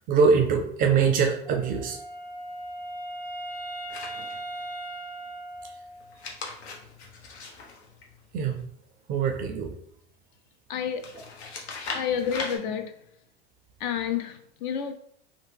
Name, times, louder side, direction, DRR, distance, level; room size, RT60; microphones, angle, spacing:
voice 1, 0.1-2.0 8.3-8.6 9.1-9.7, right 5 dB, 25° right, 0.3 m, -23 dB
Wind instrument woodwind instrument, 1.5-6.2, right 1 dB, 10° left, 0.7 m, -38 dB
sound 1, 3.9-4.7 6.0-8.6 11.0-12.6, left 4 dB, 80° left, 0.7 m, -39 dB
voice 2, 10.7-11.2 11.9-13.1 13.8-14.9, left 8 dB, 50° left, 0.4 m, -30 dB
2.8 x 2.0 x 3.3 m
hypercardioid pair, 100°, 33 cm